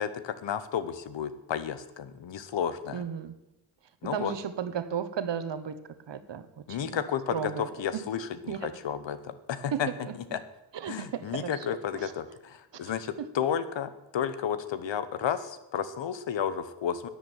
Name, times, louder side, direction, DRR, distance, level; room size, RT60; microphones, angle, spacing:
voice 1, 0.0-3.0 4.0-4.3 6.7-9.9 10.3-10.4 10.9-17.1, left 8 dB, 90° left, 13 dB, 1.1 m, -32 dB
voice 2, 2.9-3.3 4.1-5.8 6.1-7.0 7.3-8.0 8.5-8.7 9.7-10.1 10.7-11.5 11.9-12.1 12.7-12.9 13.2-13.3, right 8 dB, 75° right, 12 dB, 1.2 m, -34 dB
11.0 x 10.0 x 9.1 m, 0.96 s
cardioid pair, 50°, 43 cm